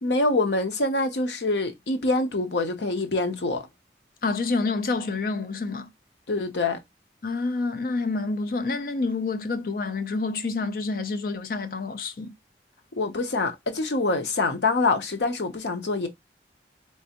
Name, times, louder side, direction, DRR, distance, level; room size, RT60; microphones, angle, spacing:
voice 1, 0.0-3.7 6.3-6.8 13.0-16.1, left 2 dB, 90° left, 0.8 m, -25 dB
voice 2, 4.2-5.9 7.2-12.3, left 3 dB, 50° left, 0.5 m, -28 dB
3.4 x 3.2 x 2.9 m
head